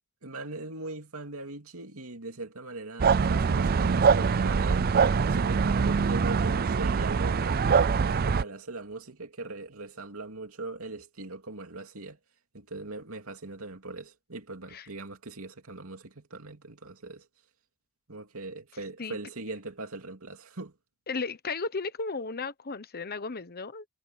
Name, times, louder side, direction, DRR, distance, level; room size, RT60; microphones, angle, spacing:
voice 1, 0.2-5.0 5.3-12.2 12.5-17.3 18.1-20.7, right 2 dB, 85° right, 2.7 m, -40 dB
sound 1, 3.0-8.4, right 5 dB, 45° right, 0.4 m, -24 dB
voice 2, 21.1-23.8, left 4 dB, 45° left, 1.1 m, -34 dB
head